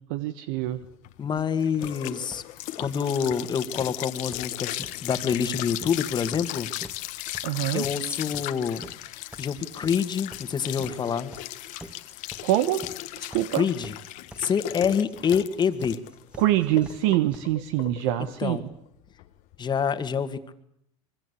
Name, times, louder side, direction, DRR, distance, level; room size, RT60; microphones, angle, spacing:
voice 1, 0.1-0.8 7.4-7.8 12.4-12.8 13.2-13.6 16.4-18.6, right 14 dB, 75° right, 11 dB, 1.3 m, -25 dB
sound 1, 0.8-19.9, left 17 dB, 60° left, 1.5 m, -37 dB
voice 2, 1.2-2.4 2.8-4.7 5.0-6.7 7.7-8.8 9.4-11.3 13.6-13.9 14.4-16.0 18.4-18.6 19.6-20.5, left 7 dB, 30° left, 10 dB, 2.0 m, -26 dB
sound 2, 1.4-17.4, right 1 dB, 5° right, 2.2 m, -45 dB
25.5 x 23.0 x 8.4 m, 0.72 s
supercardioid pair, 110°, 15 cm